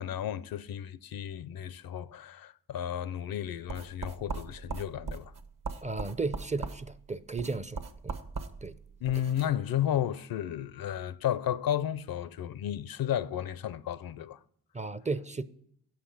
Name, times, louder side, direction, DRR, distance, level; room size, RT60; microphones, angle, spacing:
voice 1, 0.0-5.3 9.0-14.4, left 10 dB, 65° left, 0.5 m, -33 dB
sound 1, 3.7-9.5, right 4 dB, 55° right, 1.1 m, -40 dB
voice 2, 5.8-8.2 8.6-8.8 14.7-15.4, right 3 dB, 20° right, 0.5 m, -34 dB
8.2 x 5.9 x 6.2 m
supercardioid pair, 55°, 39 cm